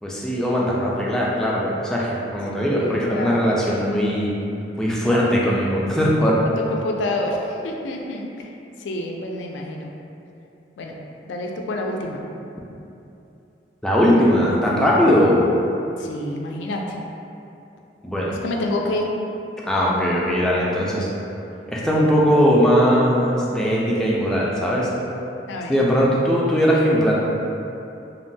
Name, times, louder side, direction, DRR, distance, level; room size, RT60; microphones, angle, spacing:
voice 1, 0.0-4.3 4.8-6.4 13.8-15.4 18.0-18.4 19.7-21.1 21.7-24.9 25.7-27.1, equal, 5° left, -6 dB, 0.3 m, -19 dB
voice 2, 2.5-3.4 6.4-8.5 8.8-9.9 10.8-11.0 11.3-12.3 16.0-17.0 18.4-19.1 22.5-22.6 25.5-25.8, left 2 dB, 85° left, 1 dB, 0.3 m, -28 dB
3.0 x 2.1 x 2.6 m, 2.8 s
head